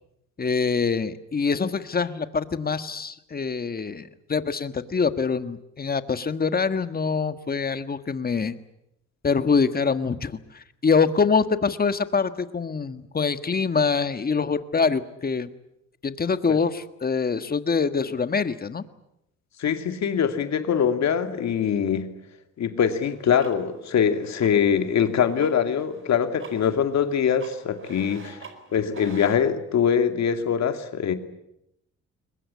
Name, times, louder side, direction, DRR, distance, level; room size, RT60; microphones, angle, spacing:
voice 1, 0.4-8.5 9.2-15.5 16.0-18.8, left 5 dB, 30° left, 11 dB, 1.6 m, -24 dB
voice 2, 19.6-22.1 22.6-28.4 28.7-31.1, left 7 dB, 65° left, 8 dB, 2.5 m, -23 dB
sound 1, 22.8-29.4, right 5 dB, 45° right, 4.6 m, -47 dB
23.0 x 21.0 x 9.5 m, 0.82 s
cardioid pair, 90°, 30 cm